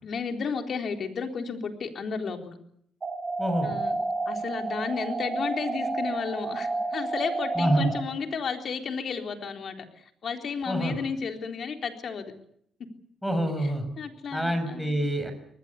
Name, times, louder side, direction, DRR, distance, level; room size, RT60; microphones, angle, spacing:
voice 1, 0.0-2.5 3.6-12.3 13.6-13.7 14.0-15.0, left 5 dB, 55° left, 5 dB, 4.0 m, -33 dB
sound 1, 3.0-8.0, right 3 dB, 35° right, 4.7 m, -30 dB
voice 2, 3.4-3.7 7.5-7.9 10.7-10.9 13.2-13.9 14.3-15.3, right 1 dB, ahead, 6 dB, 6.6 m, -26 dB
24.0 x 20.0 x 8.5 m, 0.68 s
cardioid pair, 90°, 0 cm